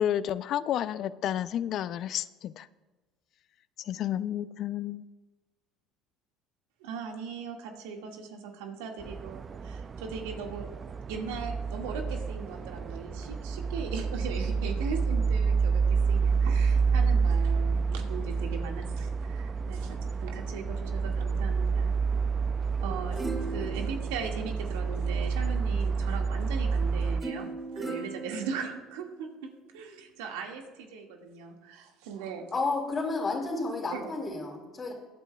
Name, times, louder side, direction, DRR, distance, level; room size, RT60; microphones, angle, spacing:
voice 1, 0.0-2.7 3.8-5.0, left 10 dB, 55° left, 16 dB, 0.4 m, -31 dB
voice 2, 6.8-10.7 11.1-21.9 22.8-27.5 27.8-32.5 33.9-34.0, right 5 dB, 90° right, 2 dB, 1.9 m, -39 dB
sound 1, 9.0-27.2, right 5 dB, 30° right, 0.4 m, -29 dB
sound 2, 22.9-25.2 27.2-29.2 29.8-29.9, right 3 dB, 15° right, 2.5 m, -39 dB
voice 3, 32.5-34.9, left 3 dB, 25° left, -5 dB, 2.8 m, -31 dB
22.5 x 9.1 x 2.3 m, 1.2 s
supercardioid pair, 100°, 0 cm